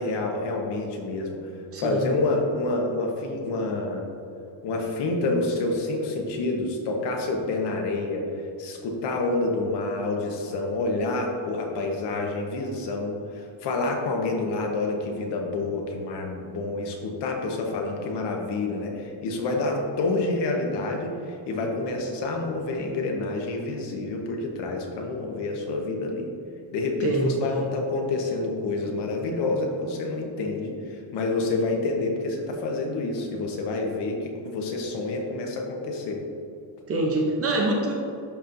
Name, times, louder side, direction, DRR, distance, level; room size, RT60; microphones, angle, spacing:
voice 1, 0.0-1.5 1.8-4.1 4.6-8.3 8.6-26.3 26.7-36.2, left 2 dB, 60° left, 1 dB, 1.1 m, -28 dB
voice 2, 1.7-2.1 27.0-27.6 36.9-37.9, right 2 dB, 30° right, 0 dB, 0.7 m, -25 dB
11.5 x 4.3 x 2.6 m, 2.6 s
cardioid pair, 180°, 47 cm